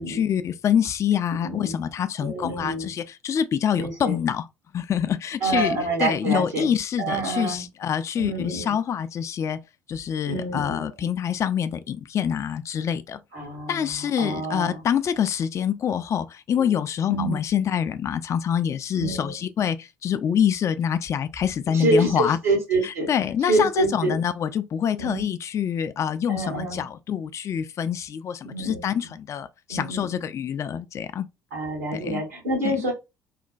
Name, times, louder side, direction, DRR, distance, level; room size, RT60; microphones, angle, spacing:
voice 1, 0.0-4.5 4.7-9.6 9.9-13.2 13.7-22.4 22.8-31.3 31.9-32.2 32.6-32.9, left 8 dB, 40° left, 0.3 m, -26 dB
voice 2, 1.3-1.8 2.2-2.9 3.8-4.2 5.4-6.7 7.0-7.6 8.2-8.7 10.3-11.1 13.3-14.8 17.1-17.3 18.9-19.3 21.7-23.1 23.5-24.2 25.0-25.2 26.3-26.8 28.4-29.1 29.7-30.2 31.5-32.9, right 2 dB, 80° right, 1.6 m, -27 dB
3.1 x 2.1 x 2.5 m
hypercardioid pair, 55°, 8 cm